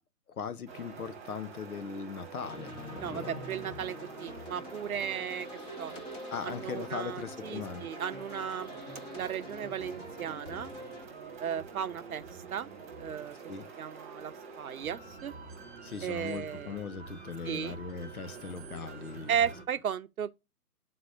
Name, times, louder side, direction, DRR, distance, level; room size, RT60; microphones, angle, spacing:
voice 1, 0.3-3.4 6.3-7.9 13.5-13.7 15.8-19.4, left 6 dB, 65° left, 1.1 m, -39 dB
sound 1, 0.7-19.6, right 5 dB, 15° right, 1.5 m, -47 dB
sound 2, 2.4-11.0, left 1 dB, 10° left, 0.9 m, -45 dB
voice 2, 3.0-5.5 5.8-5.9 6.4-8.7 9.1-10.7 11.4-12.2 12.5-12.7 13.0-13.4 13.8-15.3 16.0-16.8 17.4-17.8 19.3-20.3, right 8 dB, 65° right, 0.8 m, -35 dB
11.0 x 4.1 x 2.5 m
figure-of-eight pair, 145°, 47 cm